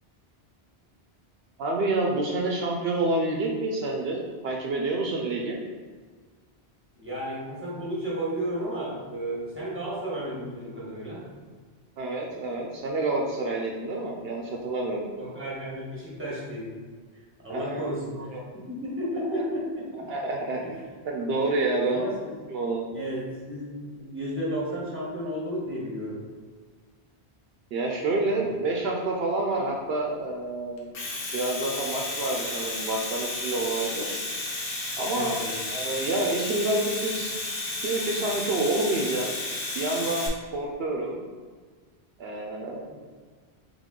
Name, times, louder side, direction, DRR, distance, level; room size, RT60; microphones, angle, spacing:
voice 1, 1.6-5.6 12.0-15.1 17.5-17.8 18.2-18.4 19.1-19.4 20.1-20.6 21.0-22.0 22.5-22.9 27.7-30.9 31.3-34.2 35.0-35.4 35.7-37.4 37.8-39.3 39.7-41.2 42.2-42.8, right 2 dB, 70° right, 0 dB, 0.8 m, -28 dB
voice 2, 7.0-11.3 15.2-16.7 17.4-20.1 20.6-20.7 21.8-22.3 22.9-26.2 35.1-35.5, equal, 10° right, -6 dB, 1.1 m, -33 dB
Domestic sounds home sounds, 30.8-40.3, left 2 dB, 80° left, 1.1 m, -32 dB
3.6 x 3.4 x 3.7 m, 1.5 s
omnidirectional pair, 1.1 m